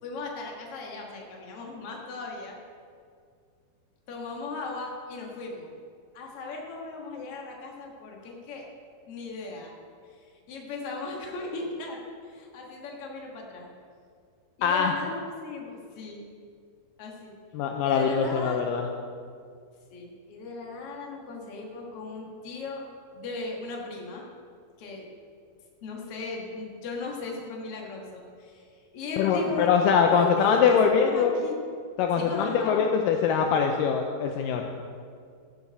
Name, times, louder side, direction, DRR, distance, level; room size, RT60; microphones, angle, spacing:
voice 1, 0.0-2.6 4.1-5.7 6.1-8.6 9.1-9.7 10.0-13.7 14.6-16.2 17.0-17.3 17.8-18.6 19.9-22.8 23.1-24.2 24.8-25.1 25.8-31.6 32.2-32.8, left 3 dB, 50° left, 0 dB, 1.9 m, -37 dB
voice 2, 14.6-14.9 17.5-18.9 29.2-31.4 32.0-34.7, left 6 dB, 85° left, 3 dB, 1.9 m, -23 dB
15.5 x 8.7 x 4.2 m, 2.2 s
omnidirectional pair, 4.5 m